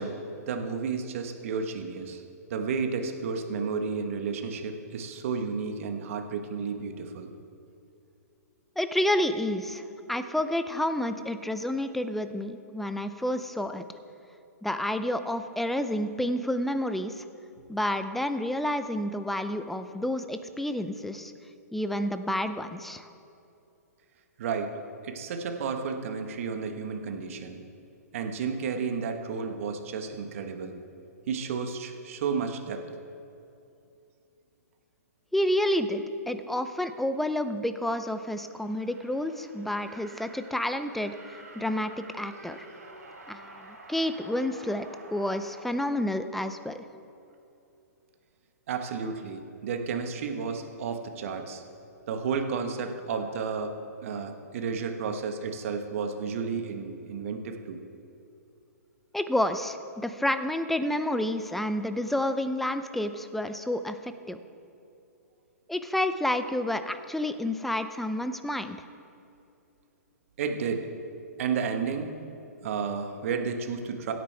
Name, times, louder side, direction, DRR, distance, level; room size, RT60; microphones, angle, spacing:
voice 1, 0.0-2.2 2.5-7.3 24.4-24.8 25.0-27.6 28.1-30.7 31.3-32.8 48.7-51.6 52.1-53.7 54.0-57.8 70.4-70.9 71.4-72.1 72.6-74.1, right 5 dB, 55° right, 5 dB, 1.3 m, -32 dB
voice 2, 8.8-13.8 14.6-17.2 17.7-21.3 21.7-23.1 35.3-42.7 43.3-46.8 59.1-64.4 65.7-68.8, left 1 dB, ahead, 10 dB, 0.5 m, -29 dB
sound 1, 38.1-47.0, right 2 dB, 90° right, 2.8 m, -49 dB
17.0 x 9.2 x 3.4 m, 2.7 s
hypercardioid pair, 120°, 9 cm